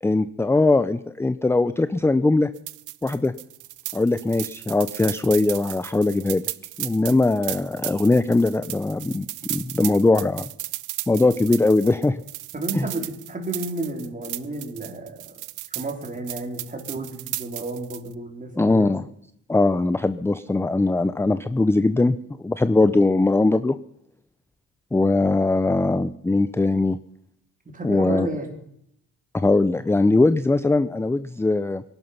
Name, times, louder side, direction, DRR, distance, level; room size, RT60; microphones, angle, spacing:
voice 1, 0.0-2.5 3.0-3.3 3.9-6.4 6.8-10.5 11.1-12.2 12.7-12.9 18.6-19.0 19.5-22.2 22.4-23.8 24.9-27.0 27.8-28.3 29.3-31.8, left 2 dB, 10° left, 13 dB, 0.5 m, -20 dB
sound 1, 2.6-18.1, right 16 dB, 80° right, 0.7 m, -35 dB
voice 2, 12.5-15.4 15.7-18.9 27.7-28.5, right 2 dB, 25° right, 3 dB, 3.7 m, -32 dB
21.5 x 12.0 x 5.6 m, 0.72 s
cardioid pair, 90°, 30 cm